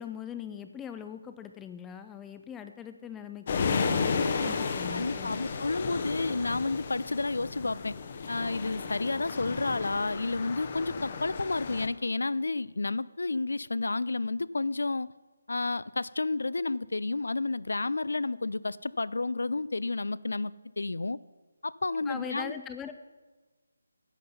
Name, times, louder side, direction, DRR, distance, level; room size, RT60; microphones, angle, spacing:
voice 1, 0.0-5.4 22.1-22.9, left 8 dB, 5° left, 8 dB, 0.4 m, -41 dB
sound 1, 3.5-11.9, left 5 dB, 30° left, 0.8 m, -33 dB
voice 2, 4.9-7.9 8.3-15.1 15.5-21.2 21.6-22.5, left 3 dB, 80° left, 19 dB, 0.4 m, -31 dB
11.0 x 7.7 x 5.5 m, 1.3 s
figure-of-eight pair, 170°, 0 cm